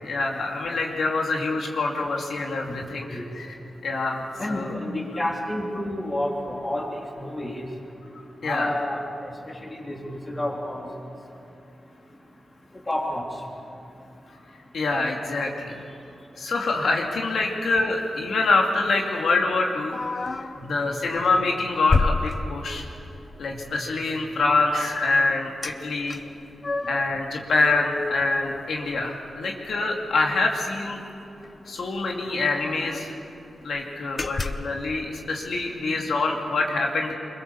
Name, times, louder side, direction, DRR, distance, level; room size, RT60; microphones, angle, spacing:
voice 1, 0.0-3.5 3.8-4.8 8.1-8.7 14.7-15.8 16.4-20.0 20.6-22.8 23.4-26.2 26.9-31.0 31.7-33.1 33.6-37.1, left 3 dB, 70° left, 0 dB, 2.5 m, -25 dB
voice 2, 4.4-6.8 7.2-7.7 8.4-9.3 9.6-10.8 12.9-13.2 20.6-20.7 23.5-23.6 26.9-27.0, left 1 dB, 20° left, -1 dB, 3.3 m, -30 dB
sound 1, 19.9-20.6 21.1-21.3 21.9-23.0 25.6-25.8 26.1-27.1 27.6-29.4 29.7-29.8 30.1-30.3 31.4-31.5 31.8-31.9 32.3-33.2 33.6-33.8 34.2-34.8, left 3 dB, 40° left, 0.9 m, -29 dB
25.5 x 22.5 x 7.1 m, 2.8 s
wide cardioid pair, 115°, 0 cm